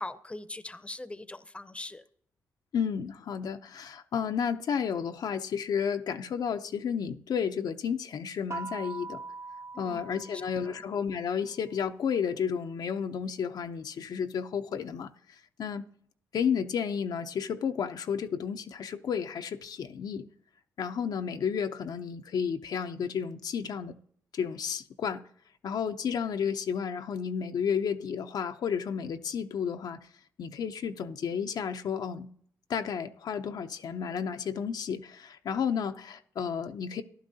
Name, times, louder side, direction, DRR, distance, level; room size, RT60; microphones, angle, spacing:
voice 1, 0.0-2.0 9.7-10.8, left 2 dB, 15° left, 0.7 m, -42 dB
voice 2, 2.7-9.2 9.8-15.8 16.3-20.2 20.8-24.0 24.3-25.2 25.6-30.0 30.4-32.3 32.7-37.0, left 7 dB, 70° left, 0.6 m, -32 dB
sound 1, 8.5-11.2, right 3 dB, 40° right, 0.4 m, -42 dB
14.0 x 11.0 x 2.8 m
supercardioid pair, 60°, 7 cm